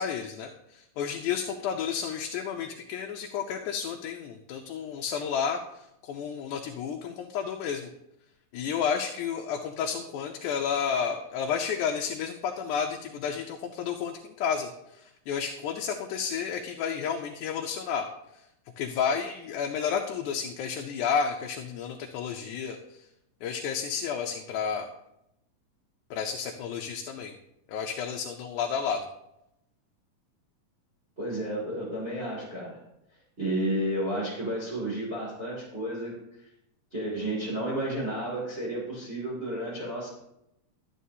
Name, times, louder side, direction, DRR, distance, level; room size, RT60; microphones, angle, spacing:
voice 1, 0.0-7.9 8.5-18.1 18.8-22.8 23.4-24.9 26.1-27.3 27.7-29.0, left 7 dB, 75° left, 2 dB, 2.0 m, -31 dB
voice 2, 31.2-32.8 33.4-36.2 36.9-40.1, right 1 dB, 20° right, -7 dB, 2.6 m, -31 dB
12.5 x 9.2 x 2.8 m, 0.85 s
omnidirectional pair, 3.7 m